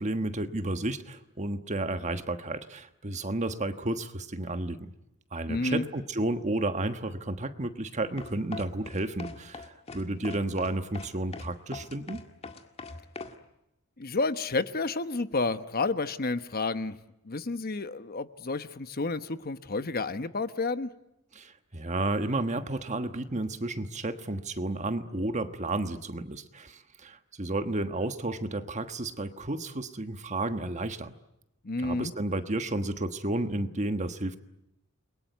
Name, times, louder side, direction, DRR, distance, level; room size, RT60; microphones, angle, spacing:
voice 1, 0.0-4.9 5.3-12.2 21.3-31.1 31.8-34.4, right 2 dB, 35° right, 9 dB, 1.3 m, -32 dB
voice 2, 5.5-5.9 14.0-17.0 17.2-20.9 31.6-32.1, left 3 dB, 45° left, 11 dB, 1.0 m, -30 dB
sound 1, 8.2-13.4, left 3 dB, 30° left, 2.0 m, -41 dB
29.0 x 22.5 x 9.3 m, 0.87 s
head